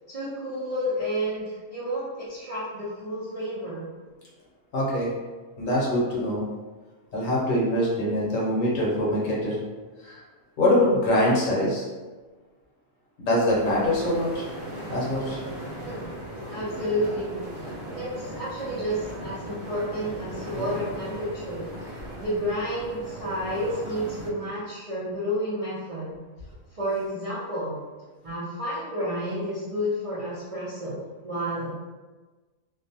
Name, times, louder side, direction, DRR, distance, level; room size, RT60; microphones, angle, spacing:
voice 1, 0.1-3.9 15.8-15.9 16.5-17.4 17.9-21.6 22.1-26.1 26.7-27.8 28.2-31.7, equal, 65° right, -10 dB, 0.3 m, -30 dB
voice 2, 4.7-5.1 5.6-6.4 7.1-9.6 10.0-10.2 10.6-11.9 13.2-14.4 14.9-15.4, left 1 dB, 70° left, -5 dB, 1.1 m, -24 dB
sound 1, 13.5-24.3, equal, ahead, 0.4 m, -38 dB
2.6 x 2.2 x 2.7 m, 1.3 s
omnidirectional pair, 1.5 m